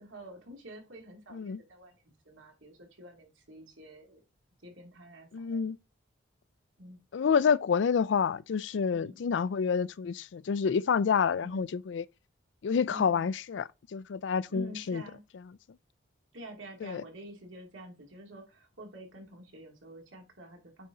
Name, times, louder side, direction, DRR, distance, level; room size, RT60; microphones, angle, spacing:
voice 1, 0.0-2.0 2.2-4.2 4.6-5.7 6.8-7.0 8.9-9.4 11.2-11.7 12.9-13.3 14.5-15.2 16.3-20.9, equal, 90° right, 2.6 m, -48 dB
voice 2, 5.3-5.8 7.1-12.0 12.6-15.0 16.8-17.0, left 6 dB, 70° left, 0.4 m, -28 dB
9.1 x 4.3 x 3.8 m
head